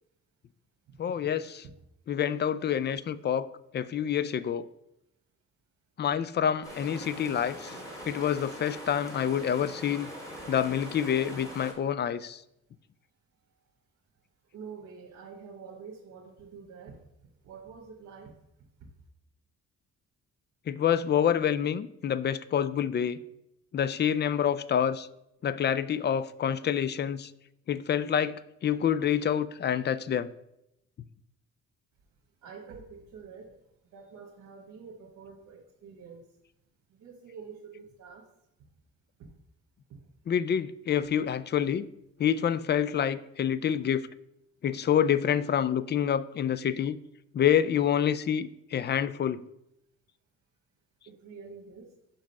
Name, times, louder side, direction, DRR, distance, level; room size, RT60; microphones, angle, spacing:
voice 1, 1.0-1.6 2.1-3.5 3.7-4.7 6.0-7.7 8.0-10.1 10.5-12.4 20.7-23.2 23.7-25.1 25.4-27.3 27.7-30.3 40.3-41.9 42.2-44.1 44.6-47.0 47.3-49.4, left 9 dB, 35° left, 16 dB, 0.4 m, -27 dB
sound 1, 6.6-11.7, equal, 10° left, 2.7 m, -42 dB
voice 2, 14.5-17.0 17.4-18.3 32.4-33.6 33.9-36.2 36.9-38.2 39.2-39.3 43.7-43.8 51.1-51.9, right 5 dB, 70° right, -1 dB, 1.3 m, -47 dB
5.8 x 5.1 x 5.4 m, 0.83 s
cardioid pair, 90°, 30 cm